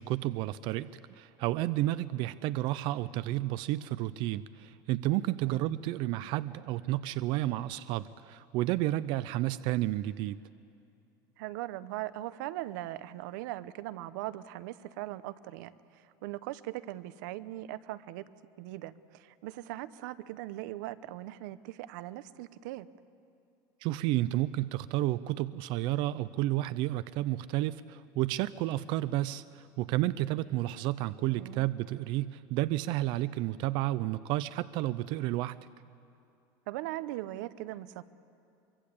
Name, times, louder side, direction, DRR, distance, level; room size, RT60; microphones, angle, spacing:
voice 1, 0.0-10.4 23.8-35.6, right 16 dB, 55° right, 16 dB, 0.5 m, -31 dB
voice 2, 11.4-15.7 16.2-18.2 18.6-22.9 31.3-31.6 36.7-38.0, right 15 dB, 90° right, 16 dB, 0.8 m, -40 dB
24.0 x 23.5 x 8.4 m, 2.6 s
cardioid pair, 160°, 10 cm